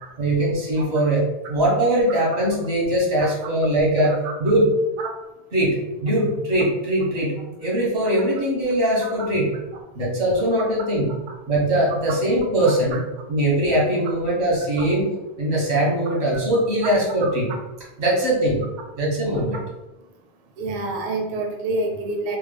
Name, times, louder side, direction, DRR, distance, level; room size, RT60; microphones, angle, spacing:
voice 1, 0.2-4.7 5.5-9.5 9.9-11.1 11.5-13.0 13.3-15.1 15.4-17.5 18.0-18.6 19.0-19.6, right 1 dB, 90° right, -4 dB, 1.4 m, -21 dB
voice 2, 12.6-13.0 14.8-14.9 17.2-17.3 20.6-22.4, right 2 dB, 55° right, 3 dB, 0.6 m, -28 dB
3.5 x 2.0 x 3.3 m, 1.0 s
omnidirectional pair, 1.1 m